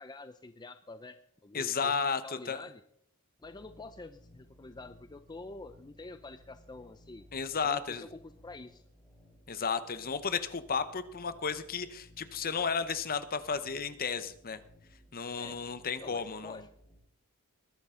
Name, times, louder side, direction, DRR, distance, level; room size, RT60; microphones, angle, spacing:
voice 1, 0.0-2.8 3.4-7.3 7.6-8.8 15.4-15.6 16.0-16.7, left 3 dB, 20° left, 9 dB, 0.5 m, -47 dB
voice 2, 1.5-2.6 7.3-8.1 9.5-14.6 15.1-16.6, left 5 dB, 40° left, 12 dB, 0.9 m, -33 dB
sound 1, 3.4-16.9, left 1 dB, ahead, 4.6 m, -59 dB
21.0 x 11.5 x 3.8 m, 0.68 s
head